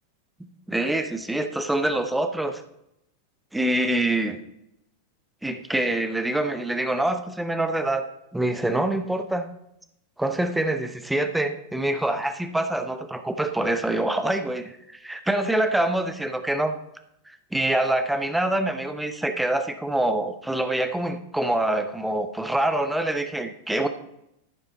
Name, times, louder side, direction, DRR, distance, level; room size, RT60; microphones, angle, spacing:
voice 1, 0.4-2.6 3.5-4.4 5.4-8.1 8.3-9.5 10.2-16.7 17.3-23.9, right 1 dB, 5° right, 8 dB, 0.8 m, -25 dB
14.5 x 5.4 x 4.2 m, 0.81 s
figure-of-eight pair, 90°, 0 cm